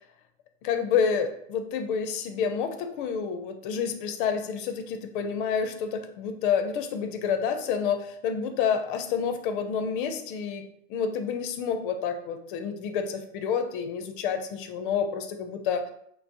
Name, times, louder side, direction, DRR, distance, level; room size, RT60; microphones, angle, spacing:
voice 1, 0.6-15.9, left 6 dB, 45° left, 7 dB, 0.5 m, -29 dB
5.7 x 2.0 x 2.7 m, 0.70 s
supercardioid pair, 150°, 37 cm